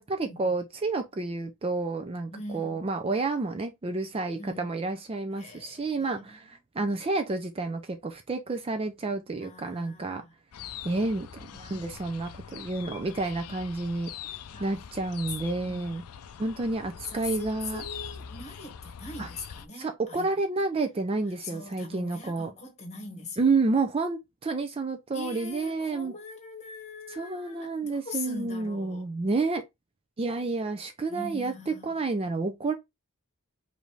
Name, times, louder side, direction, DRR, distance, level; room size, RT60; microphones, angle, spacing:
voice 1, 0.0-10.2 10.8-14.1 14.6-16.0 16.4-17.9 19.2-19.3 19.8-22.5 23.4-26.1 27.1-29.6 30.2-32.7, right 3 dB, 25° right, 0.4 m, -30 dB
voice 2, 2.3-2.9 4.4-4.6 5.4-6.5 9.4-10.3 11.6-11.7 14.5-14.7 17.0-20.3 21.4-23.4 25.1-29.0 31.1-32.0, left 2 dB, 30° left, 1.3 m, -42 dB
sound 1, 10.5-19.7, left 8 dB, 85° left, 0.4 m, -43 dB
5.1 x 2.7 x 3.1 m
head